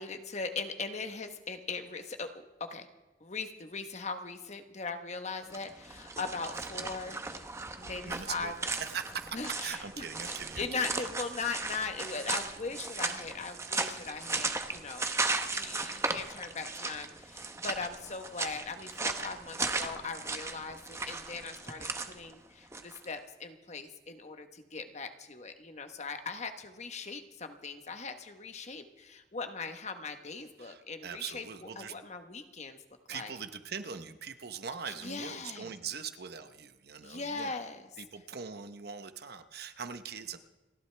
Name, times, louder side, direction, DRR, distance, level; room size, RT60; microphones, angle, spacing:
voice 1, 0.0-2.9 3.2-7.2 7.8-8.5 9.3-10.1 10.6-15.1 15.4-31.4 31.8-32.8 33.1-33.3 35.0-35.7 37.0-37.9, left 4 dB, 40° left, 7 dB, 1.2 m, -39 dB
sound 1, 5.4-23.1, right 3 dB, 15° right, 0.9 m, -36 dB
voice 2, 8.0-11.1 11.7-11.8 30.6-31.9 33.1-37.5 38.0-40.4, right 6 dB, 60° right, 9 dB, 1.0 m, -41 dB
29.5 x 11.5 x 3.4 m, 1.1 s
head